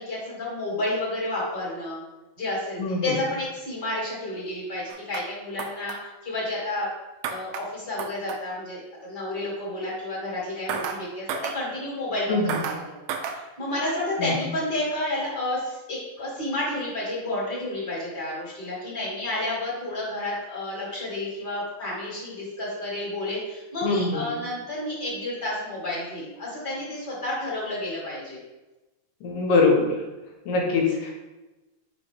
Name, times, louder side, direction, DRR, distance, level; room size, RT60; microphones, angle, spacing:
voice 1, 0.0-2.0 2.4-6.9 7.3-28.4, left 1 dB, 35° left, -7 dB, 2.1 m, -31 dB
voice 2, 2.8-3.2 12.3-12.6 14.2-14.3 23.8-24.2 29.2-29.9 30.5-31.1, left 3 dB, 70° left, 0 dB, 2.4 m, -23 dB
sound 1, 4.9-5.2 5.6-6.0 7.2-7.6 8.0-8.4 10.7-11.0 11.3-11.6 12.5-12.8 13.1-13.4, right 6 dB, 80° right, 2.4 m, -31 dB
6.2 x 5.0 x 3.3 m, 1.1 s
omnidirectional pair, 4.3 m